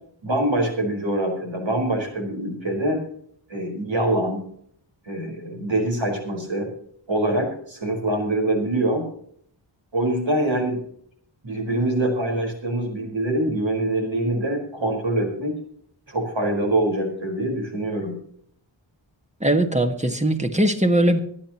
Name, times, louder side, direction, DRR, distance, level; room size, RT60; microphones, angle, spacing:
voice 1, 0.2-3.0 3.5-4.5 5.1-6.7 7.1-9.0 9.9-10.8 11.4-15.5 16.1-18.2, right 1 dB, 75° right, 2 dB, 4.7 m, -24 dB
voice 2, 19.4-21.2, right 1 dB, 15° right, 6 dB, 1.8 m, -20 dB
24.0 x 10.0 x 3.0 m, 0.64 s
wide cardioid pair, 65°, 46 cm